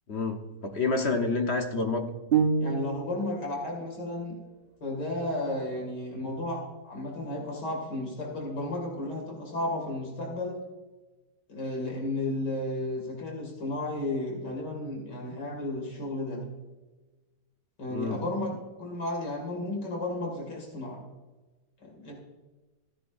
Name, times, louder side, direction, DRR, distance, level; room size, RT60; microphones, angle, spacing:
voice 1, 0.1-2.1 17.9-18.2, left 3 dB, 45° left, 4 dB, 1.0 m, -28 dB
sound 1, 2.3-3.3, right 6 dB, 60° right, 0.6 m, -26 dB
voice 2, 2.6-4.4 4.8-10.6 11.5-16.4 17.8-21.0 21.8-22.2, left 1 dB, 85° left, 0 dB, 2.9 m, -33 dB
15.5 x 10.0 x 2.5 m, 1.2 s
omnidirectional pair, 1.8 m